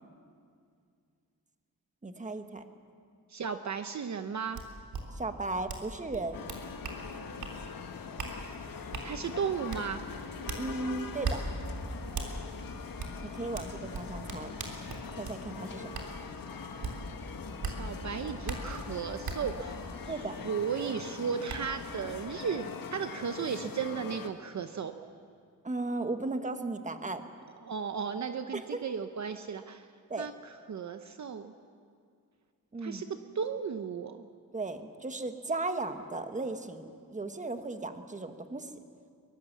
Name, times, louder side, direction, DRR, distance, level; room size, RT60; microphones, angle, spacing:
voice 1, 2.0-2.6 5.1-6.4 10.6-11.4 13.2-14.5 15.2-16.0 20.1-20.4 25.6-27.2 28.5-28.6 30.1-30.3 32.7-33.0 34.5-38.7, right 2 dB, 20° right, 7 dB, 1.4 m, -36 dB
voice 2, 3.3-4.6 9.0-10.0 17.6-24.9 27.6-29.8 30.2-31.5 32.8-33.1 33.3-34.2, right 6 dB, 50° right, 8 dB, 0.9 m, -35 dB
sound 1, 4.5-4.6 4.9-5.0 5.7-5.9 6.1-7.0 7.4-7.6 8.2-8.3 8.9-9.1 9.7-9.8 10.5-10.6 11.2-11.4 12.1-12.3 13.0-13.1 13.5-15.4 15.9-16.1 16.8-16.9 17.6-17.8 18.5-18.6 19.2-19.4 20.9-21.0 21.5-21.6, right 5 dB, 80° right, 3.4 m, -36 dB
sound 2, 6.3-24.3, left 5 dB, 65° left, 1.7 m, -42 dB
23.5 x 22.0 x 7.3 m, 2.2 s
wide cardioid pair, 135°, 36 cm